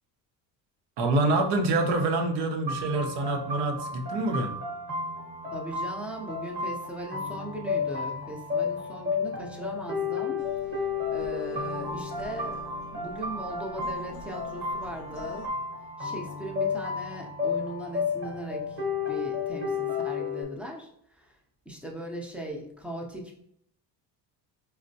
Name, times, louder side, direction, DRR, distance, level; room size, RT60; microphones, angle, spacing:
voice 1, 1.0-4.5, right 2 dB, 70° right, 3 dB, 0.7 m, -26 dB
sound 1, 2.7-20.4, left 4 dB, 25° right, 1.0 m, -32 dB
voice 2, 5.5-10.4 10.7-10.8 11.1-12.6 12.9-15.5 16.0-18.8 19.1-21.4 21.7-23.3, right 1 dB, 5° right, -2 dB, 0.6 m, -39 dB
sound 2, 10.4-15.5, left 4 dB, 65° left, 0.6 m, -45 dB
4.3 x 2.1 x 2.6 m, 0.71 s
cardioid pair, 100°, 43 cm